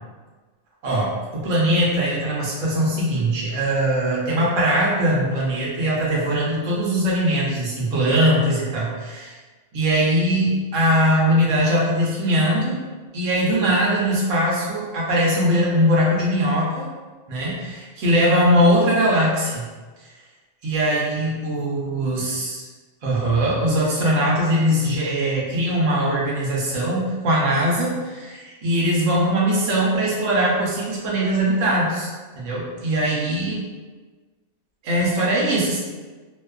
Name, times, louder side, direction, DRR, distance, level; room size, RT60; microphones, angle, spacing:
voice 1, 0.8-9.3 9.7-12.8 13.1-16.9 17.3-19.7 20.0-20.1 20.6-22.6 23.0-32.1 32.4-33.6 34.8-35.8, equal, 70° right, -5 dB, 1.0 m, -21 dB
2.7 x 2.2 x 2.2 m, 1.3 s
omnidirectional pair, 1.4 m